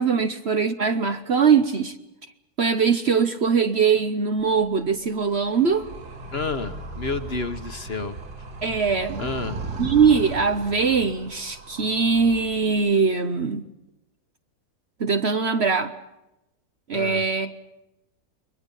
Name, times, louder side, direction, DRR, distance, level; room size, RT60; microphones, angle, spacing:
voice 1, 0.0-1.9 2.6-5.8 8.6-9.3 9.8-13.6 15.0-15.9 16.9-17.6, right 5 dB, 45° right, 1.1 m, -21 dB
Animal, 4.4-13.0, right 2 dB, 80° right, 2.7 m, -37 dB
voice 2, 6.3-8.2 9.2-9.7 16.9-17.2, left 3 dB, 40° left, 1.3 m, -30 dB
29.5 x 22.0 x 5.5 m
omnidirectional pair, 1.7 m